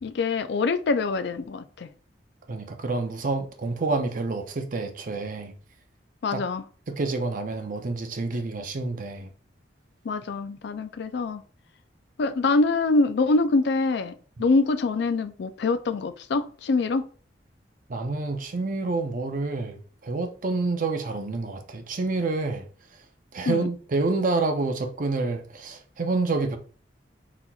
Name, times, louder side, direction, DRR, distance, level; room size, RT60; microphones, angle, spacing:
voice 1, 0.0-1.9 6.2-6.6 10.1-11.4 12.2-17.0 23.5-23.7, left 3 dB, 65° left, 0.4 m, -24 dB
voice 2, 2.5-5.5 6.3-6.4 6.9-9.3 14.4-14.5 17.9-22.7 23.3-26.6, right 3 dB, 45° right, 0.6 m, -28 dB
4.2 x 4.1 x 2.3 m
head